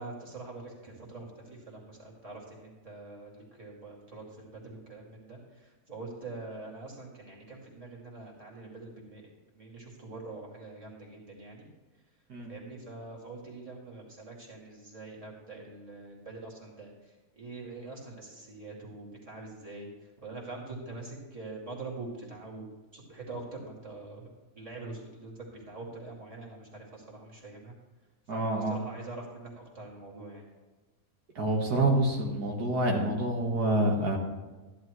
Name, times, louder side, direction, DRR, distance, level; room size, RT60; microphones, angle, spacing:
voice 1, 0.0-9.2 9.5-11.7 12.5-22.6 22.9-24.3 24.5-27.7 28.3-30.4, right 3 dB, 20° right, -3 dB, 2.5 m, -44 dB
voice 2, 28.3-28.8 31.4-34.2, right 1 dB, 85° right, 0 dB, 2.1 m, -27 dB
13.5 x 11.0 x 3.2 m, 1.2 s
omnidirectional pair, 1.6 m